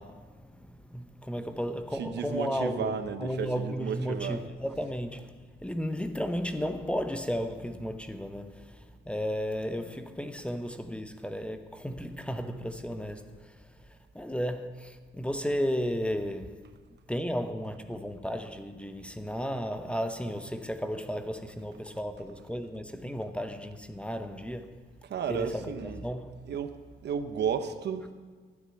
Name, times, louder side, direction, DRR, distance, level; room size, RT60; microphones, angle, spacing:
voice 1, 0.0-16.6 17.1-24.8 25.3-26.3, equal, 5° left, 0.9 m, -34 dB
voice 2, 1.9-4.4 25.0-26.0 26.5-26.7 27.0-28.1, right 7 dB, 60° right, 0.9 m, -33 dB
11.5 x 9.4 x 7.0 m
cardioid pair, 90°, 20 cm